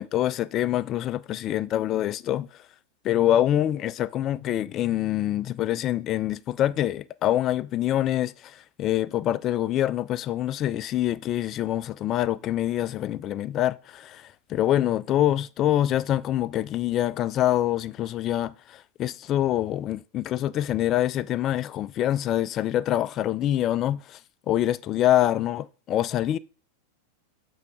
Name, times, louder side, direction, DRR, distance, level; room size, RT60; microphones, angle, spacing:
voice 1, 0.0-2.5 3.0-24.2 24.5-26.4, left 12 dB, 30° left, 0.3 m, -25 dB
8.1 x 3.2 x 4.9 m
figure-of-eight pair, 90°, 0 cm